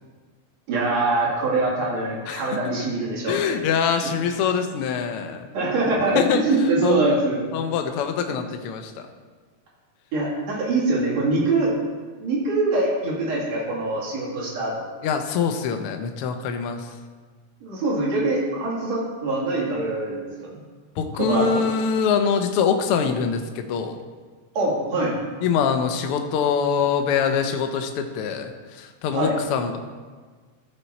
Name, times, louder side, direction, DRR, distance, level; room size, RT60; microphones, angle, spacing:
voice 1, 0.7-3.6 5.5-7.4 10.1-11.7 12.2-14.7 17.6-20.6 21.2-21.6 24.5-25.1 29.1-29.3, right 2 dB, 65° right, -5 dB, 3.4 m, -23 dB
voice 2, 3.3-5.5 6.1-7.0 7.5-9.1 15.0-16.9 21.0-24.0 25.4-29.8, left 6 dB, 70° left, 5 dB, 1.3 m, -24 dB
14.0 x 5.8 x 4.2 m, 1.5 s
omnidirectional pair, 3.4 m